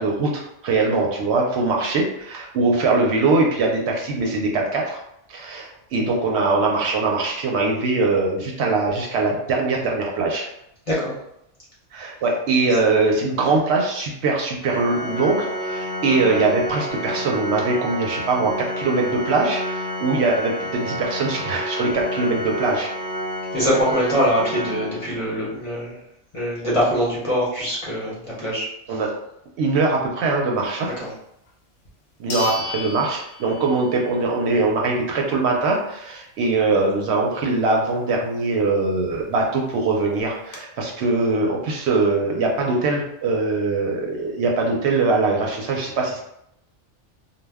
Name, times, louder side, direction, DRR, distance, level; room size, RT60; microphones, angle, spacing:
voice 1, 0.0-5.0 5.3-10.5 11.9-22.9 28.9-29.1 29.6-30.9 32.2-46.2, right 3 dB, 70° right, 0 dB, 0.8 m, -22 dB
Organ, 14.6-25.5, equal, 10° right, 0.5 m, -29 dB
voice 2, 23.5-26.0 26.3-29.0 30.8-31.1, equal, 35° left, -7 dB, 0.7 m, -23 dB
sound 1, 31.5-31.6 32.3-34.1 34.4-34.5 39.2-39.3 39.5-39.6 40.1-40.6, left 3 dB, 80° left, 1.0 m, -33 dB
2.2 x 2.1 x 3.3 m, 0.79 s
omnidirectional pair, 1.2 m